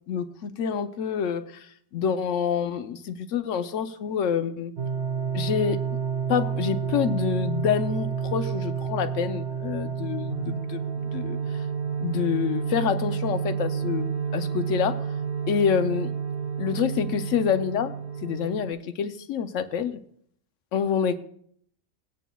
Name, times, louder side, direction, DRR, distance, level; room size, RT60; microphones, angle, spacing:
voice 1, 0.1-4.7 5.3-5.8 6.3-10.8 11.1-11.6 12.0-15.0 15.5-16.1 16.6-17.9 18.2-20.0 20.7-21.2, left 7 dB, 85° left, 10 dB, 1.0 m, -27 dB
sound 1, 4.8-18.7, right 6 dB, 50° right, 1.3 m, -30 dB
17.5 x 9.0 x 2.3 m, 0.64 s
omnidirectional pair, 1.3 m